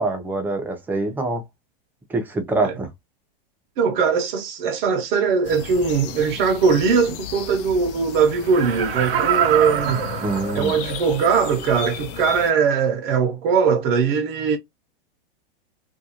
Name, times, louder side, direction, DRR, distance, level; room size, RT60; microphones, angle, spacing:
voice 1, 0.0-1.4 2.1-2.9 10.2-10.8, right 2 dB, 5° right, 0.5 m, -25 dB
voice 2, 3.8-10.1 10.5-14.6, right 6 dB, 60° right, 0.7 m, -20 dB
sound 1, 5.4-12.5, left 9 dB, 45° left, 0.4 m, -35 dB
Laughter, 8.4-11.0 11.5-11.6, right 10 dB, 85° right, 0.8 m, -25 dB
2.4 x 2.3 x 2.7 m
supercardioid pair, 140°, 29 cm